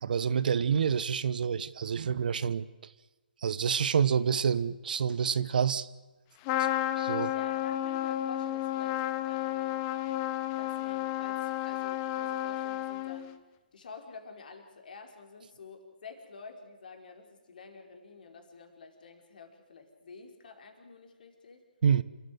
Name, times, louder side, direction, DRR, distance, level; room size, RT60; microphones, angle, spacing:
voice 1, 0.0-2.7 3.4-5.9 7.0-7.3 21.8-22.0, right 7 dB, 60° right, 17 dB, 1.0 m, -27 dB
Trumpet, 6.4-13.4, left 13 dB, 25° left, 1.3 m, -32 dB
voice 2, 7.3-9.8 10.6-13.3 13.7-21.6, left 4 dB, 60° left, 4 dB, 5.0 m, -49 dB
29.0 x 14.5 x 8.0 m, 1.2 s
figure-of-eight pair, 140°, 5 cm